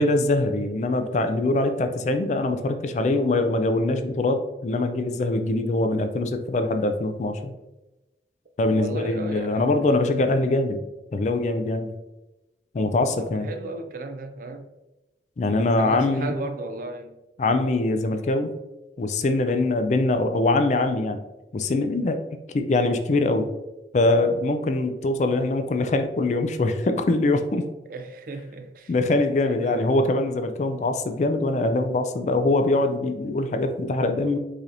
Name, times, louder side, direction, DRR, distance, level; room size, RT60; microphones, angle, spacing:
voice 1, 0.0-7.5 8.6-10.8 11.1-11.9 12.7-13.5 15.4-16.3 17.4-18.5 19.0-21.2 21.5-22.2 22.5-23.5 23.9-27.6 28.9-34.4, left 2 dB, 40° left, 0.3 m, -23 dB
voice 2, 8.7-9.7 13.2-14.7 15.8-17.2 27.9-28.9 29.4-30.0, right 2 dB, 50° right, 0.4 m, -35 dB
4.8 x 2.9 x 2.5 m
head